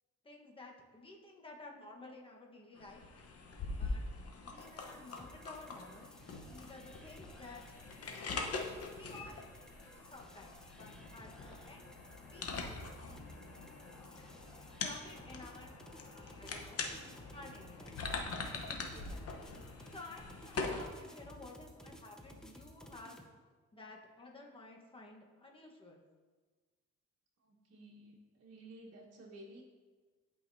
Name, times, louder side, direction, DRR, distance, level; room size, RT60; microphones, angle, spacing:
voice 1, 0.2-3.0 3.8-4.0 4.5-6.1 6.4-7.8 8.9-9.5 9.8-11.8 12.3-13.0 14.8-15.7 16.1-16.8 17.3-17.9 18.4-19.4 19.9-23.2 23.7-26.0, left 2 dB, 20° left, -1 dB, 1.3 m, -53 dB
sound 1, 2.7-20.8, left 3 dB, 50° left, 1.0 m, -43 dB
sound 2, 4.6-23.2, equal, ahead, 0.8 m, -56 dB
voice 2, 27.4-29.6, right 1 dB, 55° right, -5 dB, 1.5 m, -54 dB
11.5 x 5.1 x 2.7 m, 1.4 s
cardioid pair, 90°, 30 cm